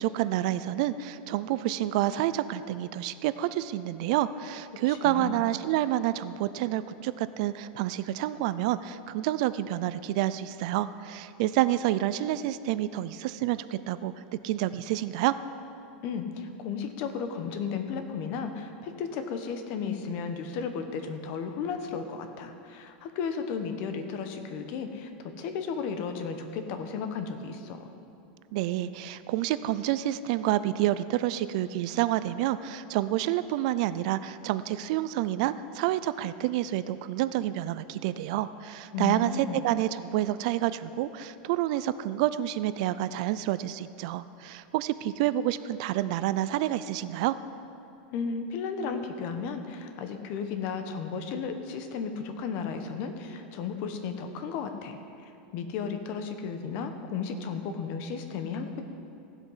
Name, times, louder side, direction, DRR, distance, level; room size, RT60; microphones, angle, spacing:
voice 1, 0.0-14.1 14.4-15.3 28.5-47.4, right 13 dB, 45° right, 14 dB, 0.3 m, -28 dB
voice 2, 4.9-5.4 16.0-25.1 25.4-27.9 38.9-39.6 48.1-55.0 55.5-58.8, left 6 dB, 40° left, 7 dB, 0.9 m, -34 dB
15.5 x 8.0 x 5.6 m, 2.6 s
supercardioid pair, 175°, 5 cm